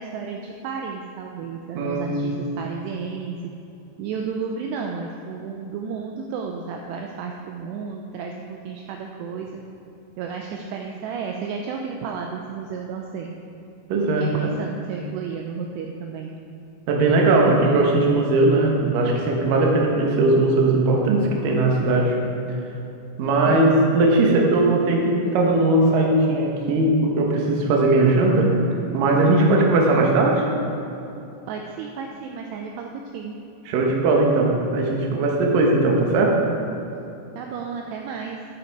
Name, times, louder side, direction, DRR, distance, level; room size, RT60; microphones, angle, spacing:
voice 1, 0.0-3.4 4.0-9.6 10.2-13.3 14.2-16.3 23.5-23.8 31.5-33.4 37.4-38.5, right 5 dB, 80° right, 2 dB, 2.5 m, -32 dB
voice 2, 1.8-2.3 13.9-14.3 16.9-22.2 23.2-28.5 28.9-30.5 33.7-36.4, right 2 dB, 65° right, 0 dB, 2.3 m, -19 dB
11.0 x 6.8 x 4.7 m, 2.9 s
omnidirectional pair, 5.2 m